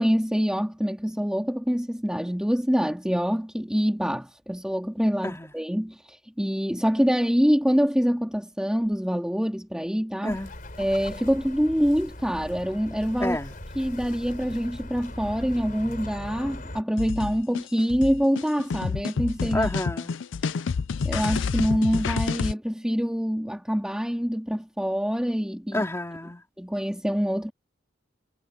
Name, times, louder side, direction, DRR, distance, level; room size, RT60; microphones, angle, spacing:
voice 1, 0.0-10.4 10.8-13.4 13.8-19.7 21.0-25.9 26.6-27.5, equal, 5° right, 2.3 m, -25 dB
Bird, 10.3-16.8, left 1 dB, 45° left, 4.2 m, -39 dB
voice 2, 13.2-13.5 19.5-20.2 25.7-26.4, left 1 dB, 15° left, 4.2 m, -29 dB
sound 1, 17.0-22.5, left 5 dB, 85° left, 0.5 m, -29 dB
head